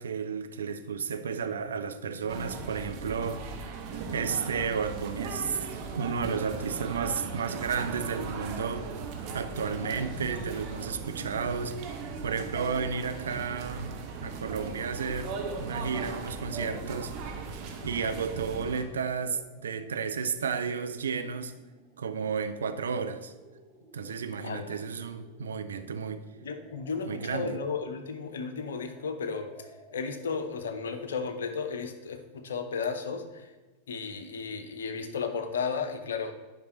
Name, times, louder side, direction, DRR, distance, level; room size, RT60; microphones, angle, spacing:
voice 1, 0.0-3.5 4.1-5.7 6.0-8.9 9.3-11.8 12.2-13.9 14.2-17.1 17.8-21.5 22.0-23.3 23.9-26.3 27.0-27.5, right 6 dB, 70° right, 0.6 m, -32 dB
sound 1, 2.3-18.8, right 4 dB, 45° right, 1.2 m, -38 dB
sound 2, 13.7-31.3, right 2 dB, 15° right, 1.5 m, -56 dB
voice 2, 24.4-24.8 26.4-33.5 33.9-36.3, left 5 dB, 65° left, 0.8 m, -34 dB
10.5 x 5.2 x 4.2 m
figure-of-eight pair, 90°, 0 cm